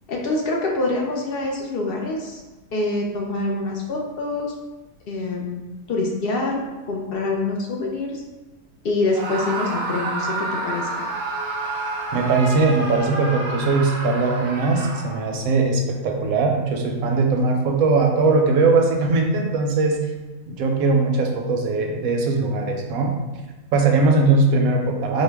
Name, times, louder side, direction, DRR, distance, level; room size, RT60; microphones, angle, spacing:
voice 1, 0.1-2.4 2.7-4.5 5.1-5.6 5.9-6.6 6.9-8.2 8.8-10.9, left 2 dB, 65° left, -1 dB, 0.6 m, -25 dB
Screaming, 9.1-15.4, right 2 dB, 60° right, 0.7 m, -29 dB
voice 2, 12.1-20.0 20.5-23.1 23.7-25.2, right 3 dB, 80° right, 2 dB, 1.0 m, -20 dB
4.5 x 2.1 x 3.4 m, 1.1 s
omnidirectional pair, 1.5 m